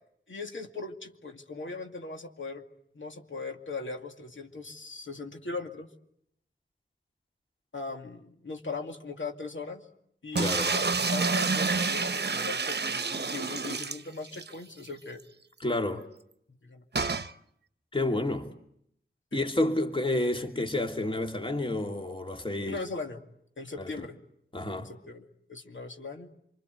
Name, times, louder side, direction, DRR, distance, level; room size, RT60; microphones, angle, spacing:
voice 1, 0.3-2.6 2.9-5.9 7.7-9.9 10.2-15.2 16.6-16.8 19.3-19.4 22.7-23.2 23.6-24.2 24.8-26.3, left 3 dB, 65° left, 2.4 m, -39 dB
voice 2, 10.4-10.8 15.6-16.0 17.9-18.5 19.3-22.8 23.8-23.9 24.5-24.9, left 1 dB, 25° left, 2.6 m, -29 dB
sound 1, 10.4-14.5 14.9-15.0 15.2-15.3 17.0-17.3, right 4 dB, 50° right, 1.0 m, -28 dB
27.0 x 25.5 x 8.2 m
wide cardioid pair, 85°, 21 cm